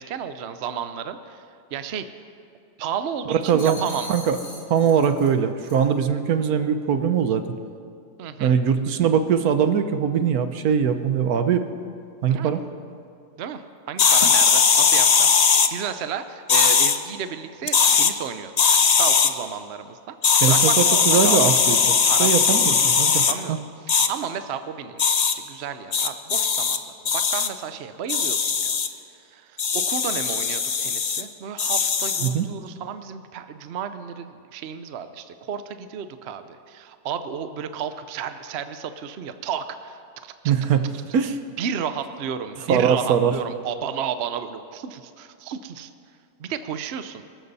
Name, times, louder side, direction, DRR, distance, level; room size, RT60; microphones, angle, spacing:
voice 1, 0.0-1.4 1.7-2.1 2.8-4.2 8.2-8.5 12.3-12.5 13.4-18.5 19.0-21.4 22.0-22.6 23.3-23.6 23.8-26.8 27.1-28.8 29.3-40.3 41.6-45.9 46.4-47.2, right 7 dB, 55° right, 10 dB, 0.8 m, -32 dB
voice 2, 3.3-3.8 4.1-4.4 4.7-7.4 8.4-11.7 12.2-12.6 20.4-23.6 32.2-32.5 40.4-41.4 42.7-43.3, right 7 dB, 70° right, 9 dB, 1.3 m, -21 dB
sound 1, 3.4-5.3 5.6-5.9, left 2 dB, 50° left, 3.0 m, -40 dB
sound 2, 14.0-15.7 16.5-17.0 17.6-18.1 18.6-19.3 20.2-23.3 23.9-24.1 25.0-25.3 25.9-26.8 27.1-27.5 28.1-28.9 29.6-31.2 31.6-32.3, left 6 dB, 65° left, 0.3 m, -19 dB
24.5 x 13.5 x 4.1 m, 2.5 s
omnidirectional pair, 1.7 m